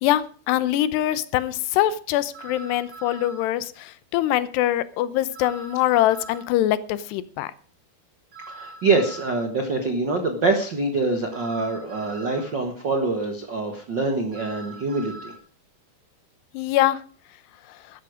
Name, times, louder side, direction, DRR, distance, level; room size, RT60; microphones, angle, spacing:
voice 1, 0.0-7.5 16.5-17.0, left 13 dB, 85° left, 16 dB, 2.9 m, -23 dB
sound 1, 2.3-3.4 5.3-6.5 8.3-9.5 11.3-12.5 14.3-15.4, right 3 dB, 45° right, 5.1 m, -42 dB
voice 2, 8.5-15.3, right 3 dB, 75° right, 5 dB, 1.0 m, -25 dB
13.5 x 12.5 x 5.0 m, 0.40 s
omnidirectional pair, 4.8 m